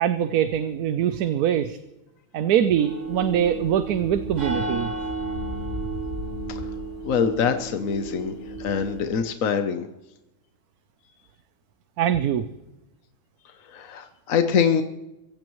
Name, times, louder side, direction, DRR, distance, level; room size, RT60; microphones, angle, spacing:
voice 1, 0.0-1.8 2.3-4.9 12.0-12.5, right 9 dB, 75° right, 11 dB, 1.2 m, -23 dB
sound 1, 2.8-9.1, right 2 dB, 50° right, 6.9 m, -32 dB
voice 2, 7.0-8.3 8.6-9.9 13.7-14.8, left 7 dB, 65° left, 7 dB, 1.2 m, -24 dB
23.5 x 15.5 x 3.1 m, 0.95 s
omnidirectional pair, 1.6 m